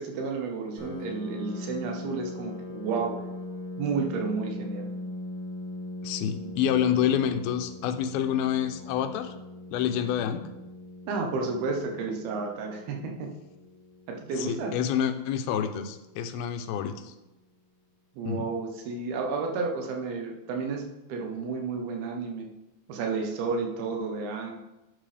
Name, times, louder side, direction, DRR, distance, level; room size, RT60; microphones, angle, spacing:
voice 1, 0.0-3.1 3.8-4.9 11.1-13.3 14.1-14.7 18.2-22.5 22.9-24.5, right 4 dB, 85° right, 2 dB, 3.1 m, -31 dB
Piano, 0.8-16.2, left 2 dB, 5° right, 3.0 m, -41 dB
voice 2, 6.0-9.3 9.7-10.5 14.4-17.1 18.3-18.5, left 9 dB, 85° left, 8 dB, 2.6 m, -28 dB
11.5 x 8.0 x 3.4 m, 0.97 s
omnidirectional pair, 4.3 m